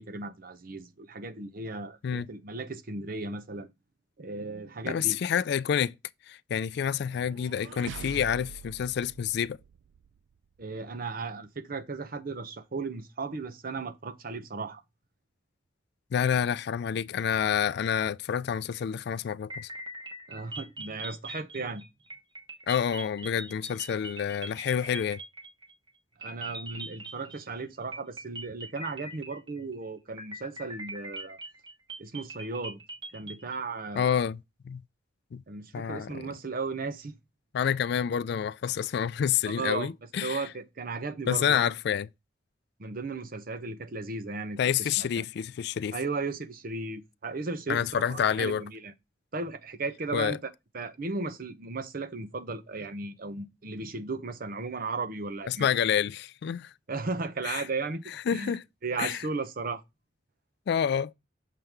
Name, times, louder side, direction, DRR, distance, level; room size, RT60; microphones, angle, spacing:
voice 1, 0.0-3.7 4.2-5.2 10.6-14.8 20.3-21.8 26.2-31.4 32.0-32.8 33.1-34.2 35.5-37.2 39.5-39.9 40.2-41.7 42.8-45.2 45.9-48.9 49.3-55.7 56.9-58.0 58.3-58.6 58.8-59.8, right 3 dB, 50° right, 0.7 m, -36 dB
voice 2, 4.9-5.9 6.3-9.6 16.1-19.7 22.7-25.2 34.0-34.4 34.6-34.8 35.3-35.4 35.7-36.2 37.5-40.4 41.3-42.1 44.6-46.0 47.7-48.6 50.1-50.4 55.5-56.7 57.4-57.6 58.3-58.6 59.0-59.2 60.7-61.1, left 8 dB, 60° left, 0.3 m, -28 dB
sound 1, 7.0-10.2, right 7 dB, 70° right, 0.3 m, -44 dB
sound 2, 19.5-25.9 26.2-27.6 27.9-29.8 30.2-33.5, right 2 dB, 25° right, 1.2 m, -42 dB
6.6 x 3.7 x 4.4 m
head